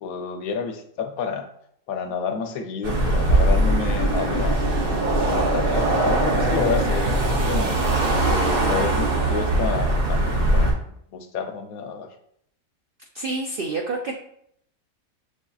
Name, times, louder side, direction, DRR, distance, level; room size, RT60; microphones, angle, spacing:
voice 1, 0.0-1.5 1.9-4.6 5.3-7.8 8.3-10.8 11.1-12.1, left 5 dB, 80° left, 5 dB, 1.1 m, -30 dB
sound 1, 2.8-10.7, right 1 dB, 50° right, 0.8 m, -21 dB
voice 2, 13.1-14.1, right 3 dB, 75° right, 1 dB, 0.5 m, -28 dB
6.9 x 2.6 x 2.3 m, 0.70 s
omnidirectional pair, 1.5 m